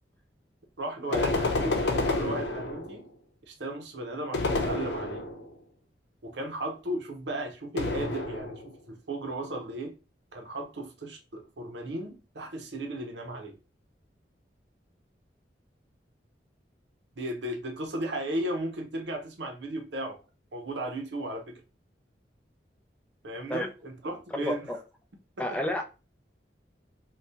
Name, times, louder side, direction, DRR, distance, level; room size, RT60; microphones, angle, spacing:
voice 1, 0.8-3.0 3.5-5.2 6.2-9.9 10.3-13.6 17.2-20.2 20.5-21.6 23.2-24.7 25.4-25.6, right 1 dB, 85° right, 0.8 m, -35 dB
sound 1, 1.1-3.1 4.3-5.5 7.8-8.8, left 2 dB, 80° left, 0.8 m, -29 dB
voice 2, 24.3-24.8 25.4-25.8, left 1 dB, 5° left, 0.5 m, -30 dB
2.7 x 2.3 x 3.5 m
head